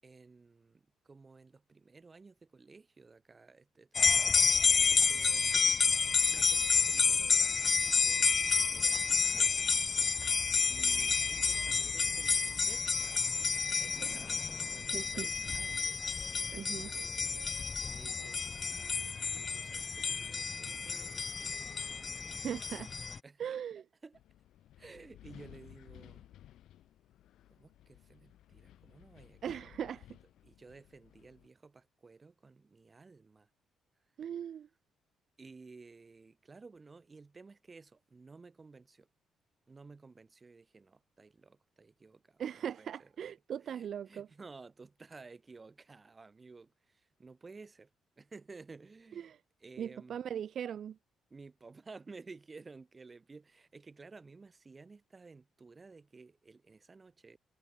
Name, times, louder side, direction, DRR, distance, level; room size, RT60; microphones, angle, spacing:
voice 1, 0.0-5.6 6.3-8.3 8.7-9.5 10.7-13.2 13.5-17.0 17.4-18.4 19.3-21.8 23.2-23.4 24.0-24.2 24.8-26.3 27.5-29.9 30.4-33.5 35.4-39.1 39.7-43.3 43.6-47.9 48.2-49.3 49.6-50.2 51.3-57.4, right 4 dB, 30° right, 7.4 m, -55 dB
sound 1, 3.9-23.2, left 5 dB, 35° left, 1.1 m, -30 dB
voice 2, 14.9-15.3 16.6-16.9 22.3-22.9 23.4-23.8 29.4-30.1 34.2-34.7 42.4-44.3 49.2-49.4 49.8-51.0, right 9 dB, 60° right, 1.4 m, -39 dB
Wind, 24.1-31.5, left 12 dB, 80° left, 6.5 m, -57 dB
cardioid pair, 90°, 0 cm